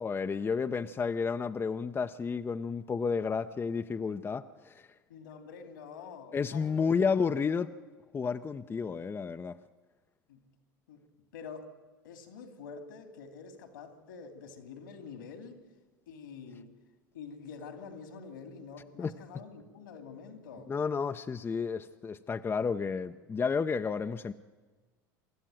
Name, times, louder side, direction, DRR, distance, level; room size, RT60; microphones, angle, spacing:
voice 1, 0.0-4.9 6.3-7.7 8.1-9.6 19.0-19.1 20.7-24.3, left 5 dB, 20° left, 9 dB, 0.7 m, -31 dB
voice 2, 5.1-6.9 10.3-10.4 10.9-11.0 11.3-11.7 12.0-15.6 16.1-16.7 17.1-20.7, left 5 dB, 75° left, 7 dB, 2.8 m, -47 dB
25.5 x 12.5 x 9.1 m, 1.4 s
hypercardioid pair, 80°, 11 cm